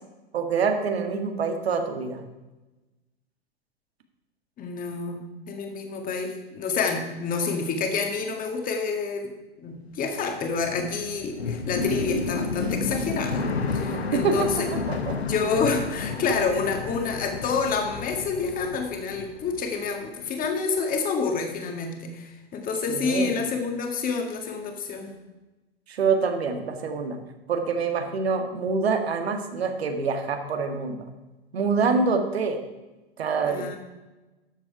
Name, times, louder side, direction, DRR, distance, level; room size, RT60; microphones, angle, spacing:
voice 1, 0.3-2.2 13.9-15.2 22.9-23.4 25.9-27.2 27.5-31.0 31.5-32.6 33.2-33.7, right 5 dB, 75° right, 5 dB, 1.8 m, -26 dB
voice 2, 4.6-9.3 9.6-14.7 15.2-25.1 31.8-32.0 33.5-33.8, left 5 dB, 25° left, 4 dB, 2.0 m, -28 dB
sound 1, 9.9-20.1 20.3-21.2, left 4 dB, 85° left, 1.3 m, -31 dB
12.5 x 7.5 x 4.9 m, 1.1 s
hypercardioid pair, 110°, 31 cm